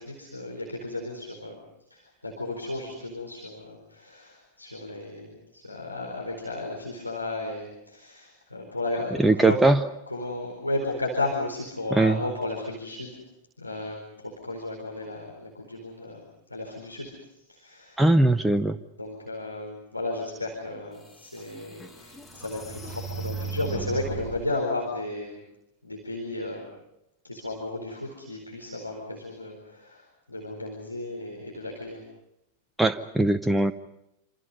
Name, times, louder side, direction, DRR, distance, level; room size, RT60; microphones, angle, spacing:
voice 1, 0.0-1.6 1.9-9.6 10.1-13.2 13.6-16.2 16.5-17.1 17.5-18.0 19.0-25.4 25.8-26.7 27.2-32.0, left 2 dB, 85° left, -1 dB, 4.3 m, -34 dB
voice 2, 9.2-9.8 11.9-12.2 18.0-18.8 32.8-33.7, right 2 dB, 5° right, 9 dB, 0.8 m, -20 dB
sound 1, 20.7-20.8 21.4-24.5, right 4 dB, 10° left, 1.9 m, -36 dB
27.5 x 27.0 x 5.5 m, 0.85 s
figure-of-eight pair, 90°, 0 cm